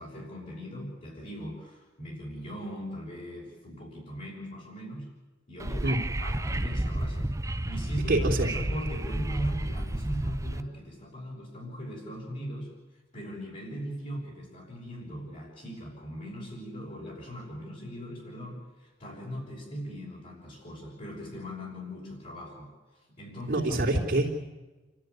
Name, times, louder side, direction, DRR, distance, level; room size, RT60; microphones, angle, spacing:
voice 1, 0.0-5.1 5.5-5.9 6.2-7.3 7.6-12.7 13.1-23.6, equal, 40° left, -5 dB, 6.4 m, -39 dB
Wind / Subway metro underground, 5.6-10.6, right 1 dB, 15° right, 0.7 m, -31 dB
voice 2, 8.1-8.5 23.5-24.4, right 1 dB, 55° right, -4 dB, 3.4 m, -25 dB
29.0 x 13.5 x 9.6 m, 1.2 s
head